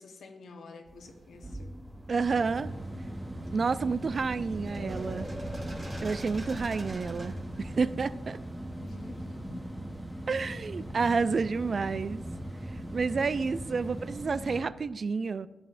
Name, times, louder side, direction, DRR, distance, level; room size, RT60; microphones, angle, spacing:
voice 1, 0.0-1.7 8.8-9.9 10.2-10.6, left 3 dB, 75° left, 1.0 m, -49 dB
sound 1, 0.9-14.6, right 1 dB, 15° right, 0.9 m, -40 dB
sound 2, 1.0-7.9, right 1 dB, 40° right, 2.2 m, -45 dB
voice 2, 2.1-2.7 3.5-5.3 6.0-8.4 10.3-12.2 12.9-15.5, right 4 dB, 55° right, 0.3 m, -30 dB
sound 3, 4.7-8.4 8.8-8.9, left 1 dB, 35° left, 1.0 m, -46 dB
11.0 x 8.5 x 2.5 m
supercardioid pair, 45°, 0 cm